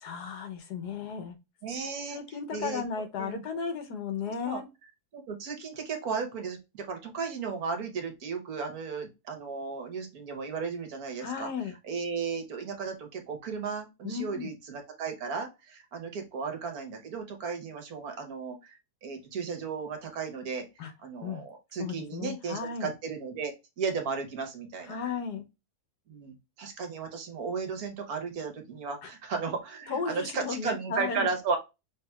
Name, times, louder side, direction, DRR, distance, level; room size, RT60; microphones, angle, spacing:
voice 1, 0.0-1.3 2.1-4.6 11.2-11.7 14.0-14.5 20.8-20.9 21.2-21.4 21.8-22.9 24.9-25.4 29.0-29.1 29.9-31.3, left 6 dB, 90° left, 7 dB, 1.6 m, -35 dB
voice 2, 1.6-2.2 2.5-3.6 4.2-4.6 5.1-11.5 11.9-20.6 21.0-25.0 26.1-31.6, right 5 dB, 70° right, 4 dB, 1.5 m, -35 dB
5.7 x 3.5 x 2.3 m, 0.24 s
omnidirectional pair, 1.7 m